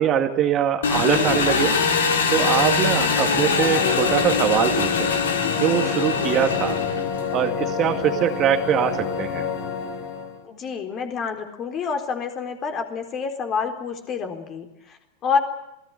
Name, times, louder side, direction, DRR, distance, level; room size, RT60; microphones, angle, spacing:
voice 1, 0.0-1.8 2.3-5.1 5.6-6.8 7.3-9.5, right 9 dB, 30° right, 7 dB, 2.2 m, -22 dB
Engine, 0.8-7.3, left 5 dB, 65° left, 3.6 m, -23 dB
sound 1, 2.6-10.4, left 6 dB, 45° left, 3.8 m, -29 dB
voice 2, 10.4-15.4, left 6 dB, 30° left, 6 dB, 3.9 m, -28 dB
27.5 x 19.0 x 7.9 m, 0.89 s
figure-of-eight pair, 90°, 0 cm